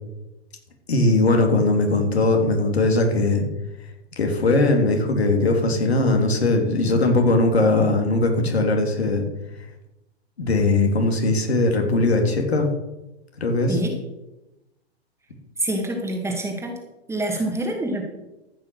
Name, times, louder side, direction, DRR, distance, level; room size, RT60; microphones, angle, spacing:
voice 1, 0.9-3.4 4.2-9.2 10.4-12.7 13.4-13.8, left 2 dB, 75° left, 3 dB, 3.0 m, -20 dB
voice 2, 15.6-16.8 17.1-18.0, right 1 dB, 10° right, 2 dB, 2.2 m, -26 dB
14.0 x 6.4 x 6.3 m, 0.95 s
figure-of-eight pair, 110°, 32 cm